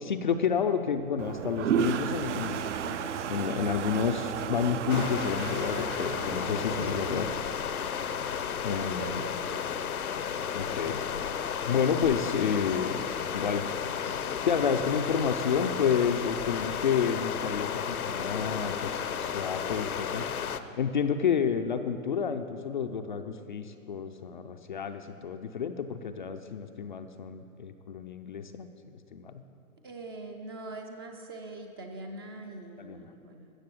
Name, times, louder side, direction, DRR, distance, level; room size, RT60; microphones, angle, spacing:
voice 1, 0.0-7.3 8.6-9.2 10.5-11.0 11.7-13.0 13.3-13.6 14.5-20.3 20.8-28.7 29.1-29.4 32.8-33.0, left 7 dB, 35° left, 7 dB, 0.4 m, -30 dB
Toilet flush, 1.2-7.3, right 8 dB, 55° right, 0.7 m, -33 dB
sound 1, 4.9-20.6, left 7 dB, 80° left, 0.8 m, -33 dB
voice 2, 6.8-7.4 8.7-9.6 29.8-33.5, right 2 dB, 20° right, 4 dB, 0.5 m, -43 dB
14.5 x 6.7 x 7.7 m, 2.7 s
hypercardioid pair, 135°, 42 cm